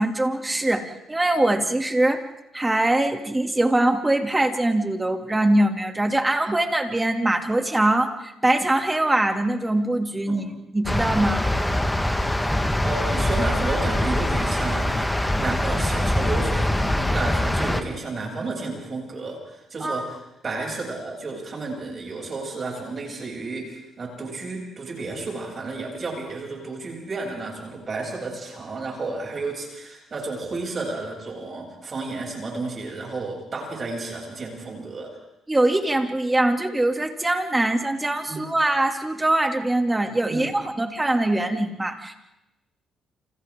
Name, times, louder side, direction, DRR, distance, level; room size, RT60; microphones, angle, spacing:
voice 1, 0.0-2.2 2.5-11.5 19.8-20.1 35.5-42.2, right 1 dB, 15° right, 5 dB, 2.8 m, -22 dB
sound 1, 10.9-17.8, left 1 dB, 10° left, 1.7 m, -23 dB
voice 2, 12.8-35.1 38.3-38.5 40.3-40.5, right 3 dB, 40° right, 0 dB, 8.0 m, -32 dB
30.0 x 27.5 x 3.9 m, 0.90 s
cardioid pair, 90°, 0 cm